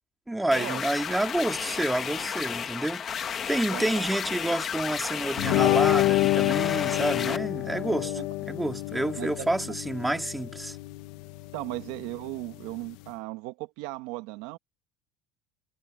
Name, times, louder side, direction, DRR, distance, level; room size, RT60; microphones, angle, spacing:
voice 1, 0.3-8.2 8.5-10.8, right 1 dB, 5° right, 2.4 m, -29 dB
sound 1, 0.5-7.4, left 8 dB, 30° left, 1.4 m, -33 dB
voice 2, 3.5-4.1 8.0-8.2 9.2-9.5 11.5-14.6, right 20 dB, 80° right, 1.4 m, -37 dB
sound 2, 5.4-13.1, left 18 dB, 70° left, 1.0 m, -28 dB
cardioid pair, 165°, 0 cm